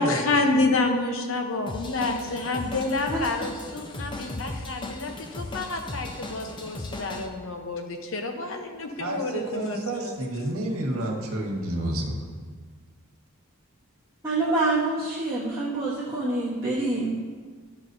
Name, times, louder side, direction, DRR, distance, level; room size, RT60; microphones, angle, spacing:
voice 1, 0.0-10.5, left 3 dB, 65° left, 4 dB, 0.8 m, -28 dB
Drum kit / Drum, 1.7-7.3, left 2 dB, 20° left, 0.5 m, -37 dB
voice 2, 9.0-12.1, right 1 dB, 80° right, 0 dB, 1.5 m, -29 dB
voice 3, 14.2-17.1, right 2 dB, 15° right, -10 dB, 1.2 m, -26 dB
12.5 x 6.2 x 2.7 m, 1.5 s
head